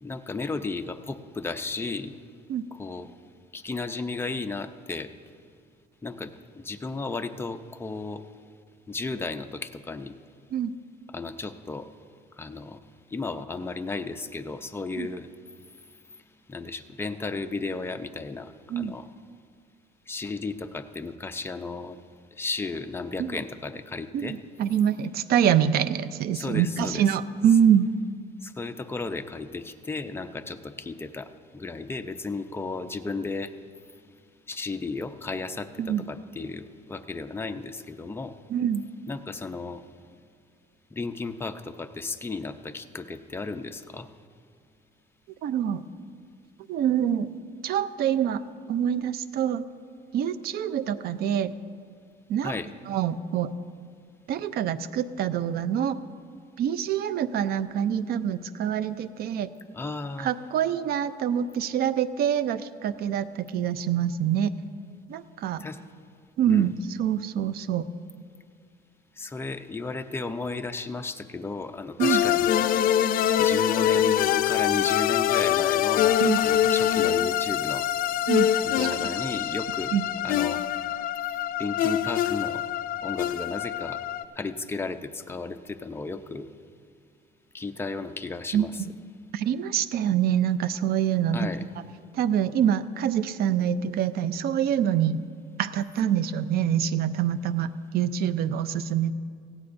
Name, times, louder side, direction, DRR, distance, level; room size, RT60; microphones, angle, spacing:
voice 1, 0.0-2.2 2.8-3.1 3.5-5.1 6.0-8.3 8.9-10.1 11.1-11.9 12.3-12.8 13.1-15.3 15.6-16.2 16.5-19.1 20.1-22.0 22.3-24.4 26.3-27.0 28.4-33.5 34.5-38.4 39.1-39.8 40.9-44.1 52.4-52.7 59.7-60.3 65.6-65.8 66.5-66.7 69.2-72.5 73.4-77.9 78.6-79.9 80.2-80.6 81.3-82.6 83.0-84.0 84.3-86.5 87.5-88.7 91.3-91.6, left 3 dB, 15° left, 7 dB, 0.6 m, -34 dB
voice 2, 24.1-27.9 35.8-36.1 38.5-38.8 45.4-45.9 46.7-47.3 47.6-49.6 50.1-51.5 52.3-52.6 52.9-53.5 54.3-56.0 56.6-59.5 60.2-64.5 65.1-65.6 66.4-67.9 72.0-72.2 76.2-76.4 78.3-78.5 78.8-79.0 79.9-80.0 88.5-88.9 89.3-91.5 92.1-95.2 95.6-99.1, right 9 dB, 65° right, 14 dB, 0.6 m, -25 dB
sound 1, 72.0-84.2, left 11 dB, 60° left, 0.4 m, -24 dB
18.0 x 16.0 x 2.6 m, 2.1 s
cardioid pair, 110°, 17 cm